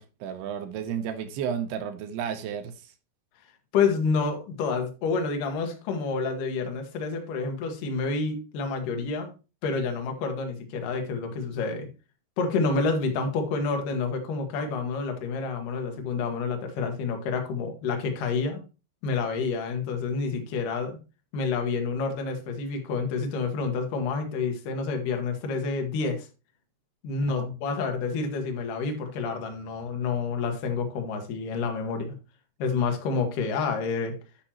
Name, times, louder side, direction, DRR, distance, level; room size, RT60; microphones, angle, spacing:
voice 1, 0.0-2.7 27.4-27.5, right 8 dB, 75° right, 2.6 m, -32 dB
voice 2, 3.7-9.3 9.6-11.9 12.4-18.6 19.0-21.0 21.3-26.3 27.0-32.1 32.6-34.2, left 4 dB, 60° left, 2.5 m, -28 dB
10.0 x 6.7 x 3.0 m
omnidirectional pair, 5.2 m